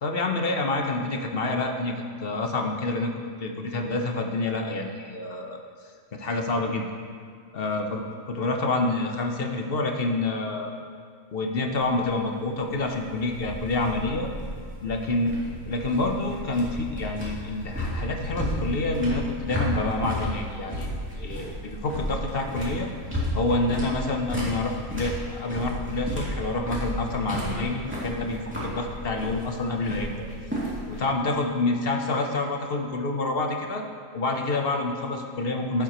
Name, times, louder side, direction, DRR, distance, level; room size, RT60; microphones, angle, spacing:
voice 1, 0.0-3.1 3.4-5.6 6.1-6.9 7.5-8.0 8.3-10.7 11.3-14.3 14.8-20.9 21.2-22.9 23.3-30.3 30.9-33.8 34.1-35.8, left 2 dB, 50° left, 3 dB, 1.0 m, -27 dB
sound 1, 11.7-31.0, equal, 10° right, 2.5 m, -33 dB
15.0 x 7.3 x 3.0 m, 2.1 s
omnidirectional pair, 1.4 m